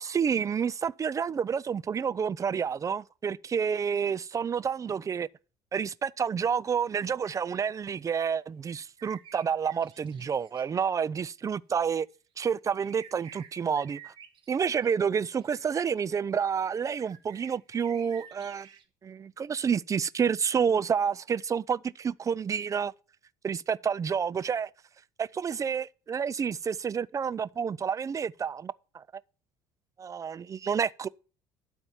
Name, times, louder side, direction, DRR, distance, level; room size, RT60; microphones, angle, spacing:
voice 1, 0.0-5.3 5.7-12.1 12.4-14.1 14.5-18.7 19.0-22.9 23.4-24.7 25.2-29.0 30.0-31.1, right 7 dB, 30° right, 0.5 m, -29 dB
sound 1, 9.0-10.6 12.7-14.9 15.3-15.5 17.0-18.8, right 8 dB, 50° right, 1.7 m, -50 dB
12.0 x 4.4 x 7.1 m
hypercardioid pair, 65°, 11 cm